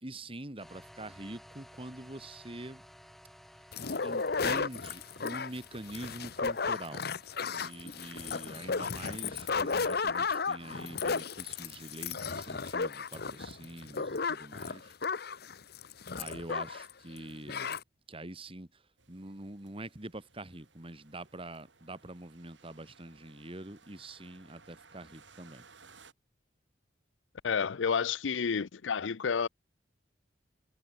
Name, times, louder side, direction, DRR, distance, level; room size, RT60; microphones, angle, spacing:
voice 1, 0.0-2.8 4.0-7.1 7.5-14.9 16.1-17.7 18.1-18.8 19.1-25.6, right 1 dB, 30° right, 2.3 m, -45 dB
sound 1, 0.6-12.7, equal, ahead, 7.7 m, -58 dB
sound 2, 3.7-16.9 17.2-17.3 17.5-17.8, left 5 dB, 55° left, 1.0 m, -34 dB
sound 3, 19.0-26.1, right 4 dB, 75° right, 5.4 m, -60 dB
voice 2, 27.4-29.5, left 6 dB, 85° left, 0.6 m, -30 dB
head